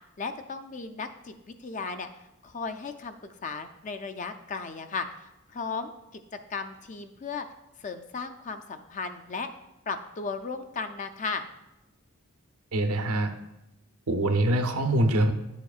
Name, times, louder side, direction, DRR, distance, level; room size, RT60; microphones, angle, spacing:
voice 1, 0.2-2.1 2.4-6.2 6.5-7.5 7.8-9.5 9.9-11.5, left 4 dB, 35° left, 9 dB, 0.4 m, -35 dB
voice 2, 12.7-13.3 14.1-15.3, right 1 dB, 90° right, 6 dB, 0.7 m, -24 dB
10.0 x 7.1 x 2.4 m, 0.94 s
head